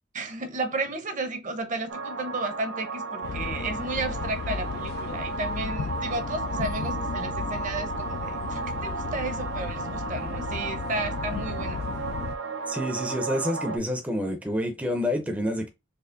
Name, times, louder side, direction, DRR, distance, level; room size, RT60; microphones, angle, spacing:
voice 1, 0.1-11.9, right 2 dB, 45° right, 0.8 m, -33 dB
sound 1, 1.9-13.8, right 4 dB, 85° right, 0.6 m, -34 dB
sound 2, 3.2-12.3, left 5 dB, 60° left, 0.3 m, -35 dB
voice 2, 12.7-15.7, equal, 10° right, 0.6 m, -28 dB
4.2 x 2.9 x 2.5 m
head